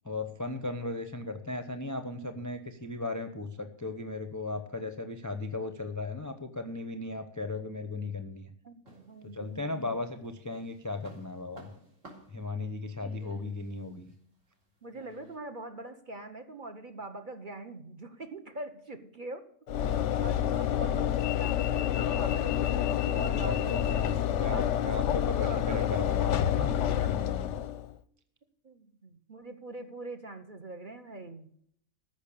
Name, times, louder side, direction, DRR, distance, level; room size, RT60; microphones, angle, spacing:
voice 1, 0.0-8.5 9.3-11.7 12.3-14.1 19.8-20.6 23.4-27.6, left 2 dB, 15° left, 7 dB, 0.6 m, -37 dB
voice 2, 8.6-10.0 13.3-13.5 14.8-19.5 20.2-24.0 24.8-25.0 25.4-25.8 28.6-31.5, right 2 dB, 35° right, 6 dB, 1.1 m, -43 dB
sound 1, 8.8-9.8 10.2-15.4, right 1 dB, 55° right, 4.0 m, -55 dB
Train / Engine / Alarm, 19.7-27.9, left 10 dB, 65° left, 0.9 m, -28 dB
14.0 x 6.2 x 8.6 m, 0.67 s
omnidirectional pair, 1.5 m